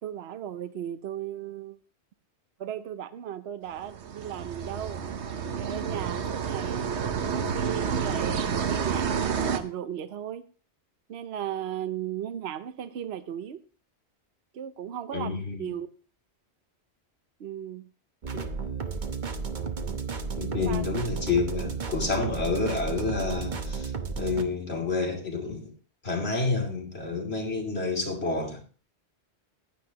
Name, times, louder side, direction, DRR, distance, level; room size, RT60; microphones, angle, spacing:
voice 1, 0.0-1.8 2.6-5.0 5.5-10.4 11.1-13.6 14.5-15.9 17.4-17.9 20.5-20.8, right 10 dB, 70° right, 11 dB, 1.0 m, -36 dB
sound 1, 3.8-9.6, right 6 dB, 90° right, 1.3 m, -29 dB
voice 2, 15.1-15.7 18.3-18.5 20.4-25.7 26.0-28.6, left 4 dB, 70° left, 2 dB, 3.0 m, -29 dB
sound 2, 18.2-24.4, right 5 dB, 45° right, 1.1 m, -33 dB
15.5 x 10.5 x 2.9 m, 0.36 s
omnidirectional pair, 1.1 m